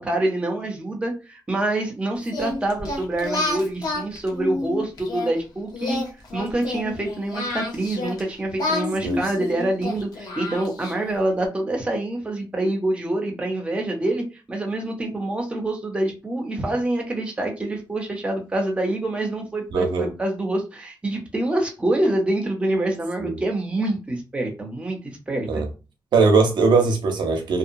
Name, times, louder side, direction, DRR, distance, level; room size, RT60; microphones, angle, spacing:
voice 1, 0.0-6.0 6.3-25.6, right 1 dB, 15° right, 0.7 m, -26 dB
Singing, 2.3-5.3 5.7-8.2 8.6-11.2, left 2 dB, 60° left, 0.9 m, -29 dB
voice 2, 19.7-20.1 23.2-23.3 25.5-25.7 26.1-27.6, right 4 dB, 85° right, 0.7 m, -20 dB
2.7 x 2.1 x 2.6 m
wide cardioid pair, 145°, 8 cm